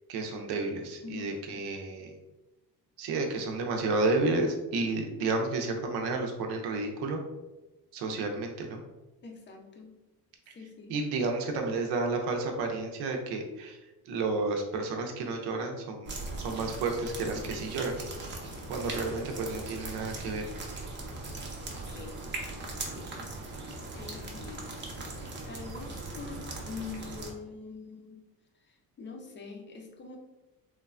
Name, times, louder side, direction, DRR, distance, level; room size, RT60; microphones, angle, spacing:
voice 1, 0.1-2.1 3.0-7.2 7.9-8.8 10.5-10.6 10.9-13.8 14.0-17.9 18.7-20.5, right 3 dB, 85° right, 3 dB, 0.6 m, -31 dB
voice 2, 1.0-1.4 8.1-8.2 9.2-10.0 10.5-11.0 21.8-22.2 22.6-24.7 25.2-28.2 28.5-30.2, left 5 dB, 30° left, 2 dB, 0.5 m, -45 dB
sound 1, 16.1-27.3, right 2 dB, 30° right, 0.6 m, -39 dB
3.2 x 2.1 x 2.4 m, 1.0 s
cardioid pair, 105°, 39 cm